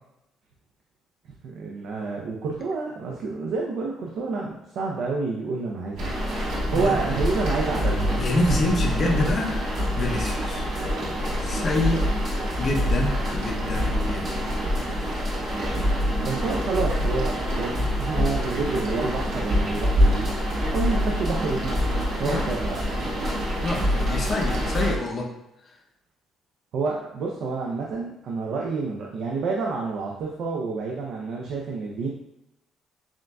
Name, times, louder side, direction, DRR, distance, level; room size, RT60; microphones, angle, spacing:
voice 1, 1.4-6.2 6.7-8.1 8.5-8.7 16.2-20.3 20.7-21.8 22.2-22.8 26.7-32.1, right 4 dB, 55° right, -2 dB, 0.5 m, -29 dB
sound 1, 6.0-24.9, equal, 75° right, 1.4 m, -27 dB
sound 2, 6.3-25.0, equal, 25° right, 1.0 m, -30 dB
voice 2, 6.7-7.2 8.2-9.6 10.0-10.6 11.4-12.1 12.6-14.5 22.2-22.5 23.6-25.3, left 2 dB, 35° left, -1 dB, 0.6 m, -27 dB
7.1 x 2.5 x 2.3 m, 0.87 s
cardioid pair, 170°, 0 cm